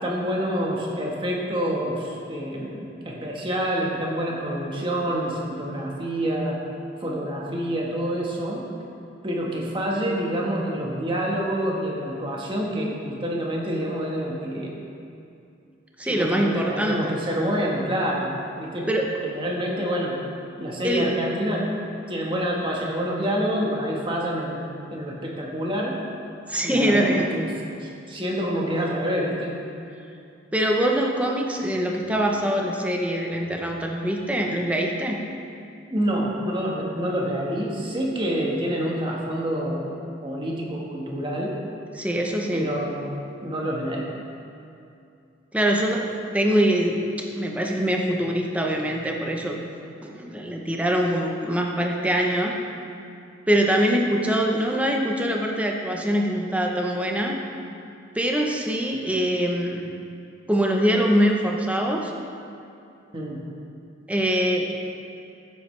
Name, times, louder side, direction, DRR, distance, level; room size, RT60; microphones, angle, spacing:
voice 1, 0.0-6.6 7.0-8.6 9.2-14.7 16.1-18.9 19.2-20.2 20.6-21.6 22.1-24.6 24.9-26.0 26.6-27.5 27.8-29.5 35.9-40.0 40.2-41.5 42.5-43.1 43.4-44.1 63.1-63.4, equal, 25° right, -2 dB, 1.4 m, -27 dB
voice 2, 16.0-17.1 18.9-19.1 20.8-21.1 26.5-27.3 30.5-35.2 41.9-42.7 45.5-49.6 50.0-52.5 53.5-57.4 58.1-59.9 60.5-62.1 64.1-64.7, equal, 5° right, 0 dB, 0.8 m, -23 dB
14.5 x 8.1 x 3.3 m, 2.6 s
head